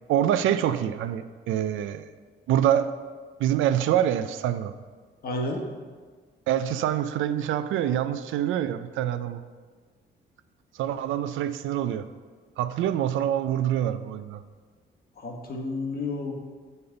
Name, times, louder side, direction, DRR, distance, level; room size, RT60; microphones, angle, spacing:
voice 1, 0.1-2.1 2.5-2.9 3.4-4.7 6.5-9.4 10.8-12.0 12.6-14.4, right 11 dB, 80° right, 11 dB, 0.4 m, -25 dB
voice 2, 5.2-5.6 15.2-16.3, left 2 dB, 50° left, 1 dB, 1.3 m, -31 dB
6.9 x 5.4 x 3.9 m, 1.5 s
cardioid pair, 90°, 20 cm